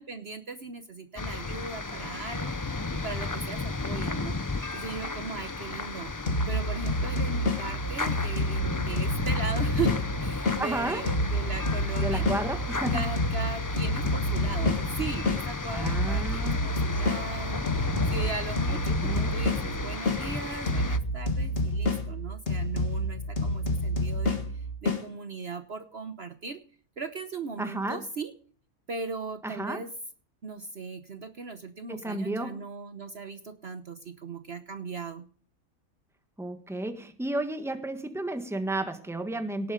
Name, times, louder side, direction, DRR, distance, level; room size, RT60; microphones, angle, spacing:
voice 1, 0.0-4.4 4.7-6.1 6.5-12.3 12.9-26.6 27.0-28.3 28.9-29.9 30.4-35.3, right 4 dB, 50° right, 9 dB, 1.2 m, -38 dB
sound 1, 1.2-21.0, left 3 dB, 25° left, 0.4 m, -33 dB
sound 2, 6.3-10.6 11.1-15.4 15.9-20.2 20.7-25.0, left 1 dB, 45° left, 2.0 m, -29 dB
voice 2, 10.6-11.0 12.0-13.0 15.7-16.6 18.7-19.4 27.6-28.1 29.4-29.8 31.9-32.6 36.4-39.7, right 2 dB, ahead, 7 dB, 1.5 m, -32 dB
18.5 x 8.3 x 5.1 m, 0.44 s
omnidirectional pair, 1.5 m